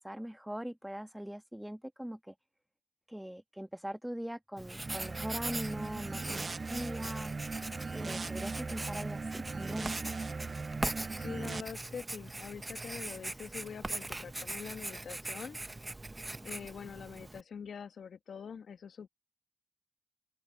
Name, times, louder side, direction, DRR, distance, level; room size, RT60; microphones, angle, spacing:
voice 1, 0.0-2.3 3.1-7.3 7.9-9.9, equal, 5° right, 1.3 m, -41 dB
Writing, 4.6-17.4, right 2 dB, 25° right, 0.9 m, -41 dB
sound 1, 4.8-11.6, right 4 dB, 45° right, 0.4 m, -39 dB
voice 2, 11.2-15.6 16.4-19.1, left 6 dB, 70° left, 1.2 m, -44 dB
open air
supercardioid pair, 45°, 0 cm